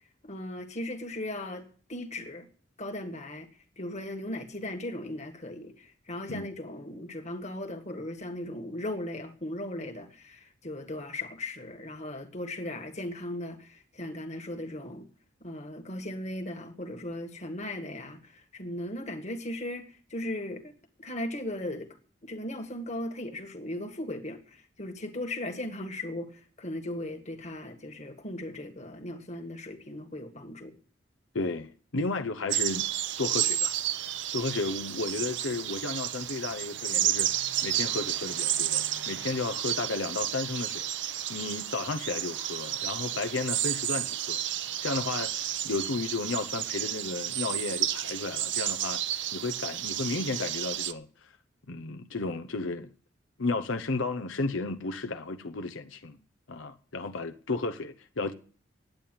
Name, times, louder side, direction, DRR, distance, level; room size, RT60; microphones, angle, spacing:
voice 1, 0.2-2.5 2.8-3.5 3.8-15.1 15.4-20.7 21.0-21.9 22.2-30.7, left 1 dB, 35° left, 1.8 m, -37 dB
voice 2, 31.3-32.9 33.2-40.9 41.3-51.3 51.7-52.9 53.4-56.2 56.5-58.3, left 3 dB, 90° left, 0.9 m, -33 dB
sound 1, 32.5-50.9, right 12 dB, 65° right, 0.8 m, -31 dB
10.5 x 8.8 x 9.2 m
head